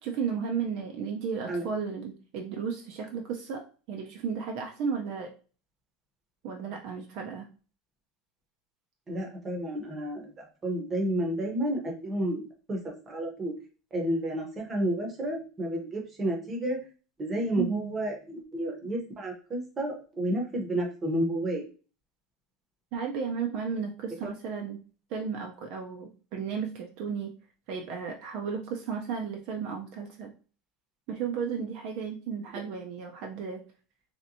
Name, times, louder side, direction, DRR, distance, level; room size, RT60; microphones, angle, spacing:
voice 1, 0.0-5.3 6.4-7.5 17.5-18.0 22.9-24.8 25.1-27.3 27.7-30.3 31.1-33.6, right 6 dB, 50° right, 2 dB, 0.5 m, -34 dB
voice 2, 9.1-12.4 12.7-13.5 13.9-16.8 17.2-21.6, right 1 dB, 20° right, 0 dB, 0.8 m, -31 dB
3.2 x 2.9 x 2.6 m, 0.37 s
supercardioid pair, 165°, 0 cm